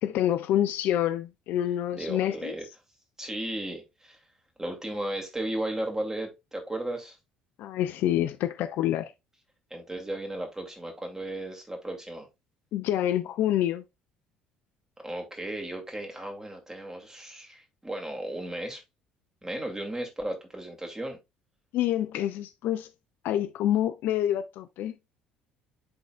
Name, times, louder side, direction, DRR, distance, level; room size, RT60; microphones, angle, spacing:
voice 1, 0.0-2.5 7.6-9.1 12.7-13.8 21.7-22.9 23.2-24.9, left 12 dB, 55° left, 0.5 m, -27 dB
voice 2, 1.9-2.7 3.2-4.2 4.6-7.2 9.7-12.3 15.0-18.8 19.4-21.2, right 1 dB, 15° right, 2.3 m, -35 dB
11.5 x 3.9 x 2.3 m
figure-of-eight pair, 55°, 4 cm